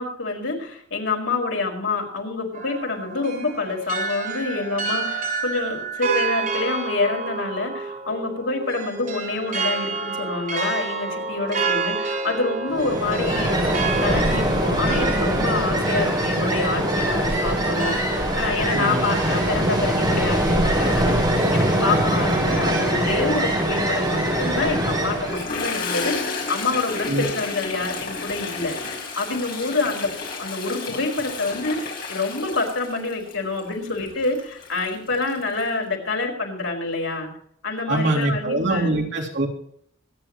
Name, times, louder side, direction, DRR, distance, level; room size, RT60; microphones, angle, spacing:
voice 1, 0.0-37.3 37.6-38.9, left 3 dB, 80° left, 1 dB, 4.8 m, -27 dB
sound 1, 2.5-19.9, right 4 dB, 40° right, 5.4 m, -30 dB
Ocean, 12.7-25.5, right 1 dB, 20° right, 6.4 m, -22 dB
voice 2, 18.7-19.1 27.1-27.3 37.9-39.5, right 2 dB, 60° right, -1 dB, 3.3 m, -23 dB
Toilet flush, 25.1-35.7, left 4 dB, 45° left, 6.0 m, -32 dB
24.5 x 10.0 x 3.1 m, 0.66 s
head